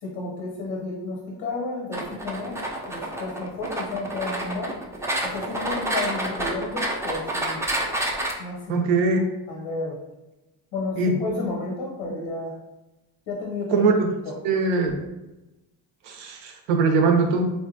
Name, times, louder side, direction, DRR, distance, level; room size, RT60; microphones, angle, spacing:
voice 1, 0.0-2.6 2.9-4.7 5.2-7.6 8.4-8.8 9.5-10.0 10.7-12.5 13.3-13.8 14.3-14.4, left 3 dB, 90° left, -2 dB, 0.8 m, -32 dB
sound 1, 1.9-8.3, right 1 dB, 5° right, 0.3 m, -29 dB
voice 2, 8.7-9.2 11.0-11.1 13.7-13.9 14.4-15.0 16.1-17.5, right 4 dB, 80° right, 4 dB, 0.6 m, -21 dB
3.1 x 2.2 x 2.6 m, 0.99 s
supercardioid pair, 60°, 49 cm